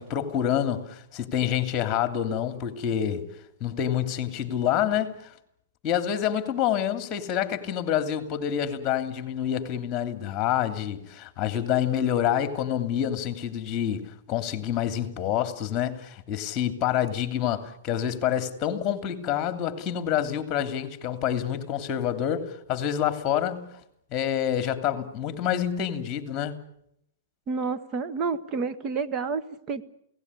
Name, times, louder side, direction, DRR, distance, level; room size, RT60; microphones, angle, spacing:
voice 1, 0.0-3.3 3.6-5.3 5.8-23.7 24.1-26.6, left 10 dB, 25° left, 3.0 m, -27 dB
voice 2, 27.5-29.8, right 4 dB, 25° right, 1.4 m, -29 dB
29.0 x 18.0 x 9.9 m
hypercardioid pair, 145°, 0 cm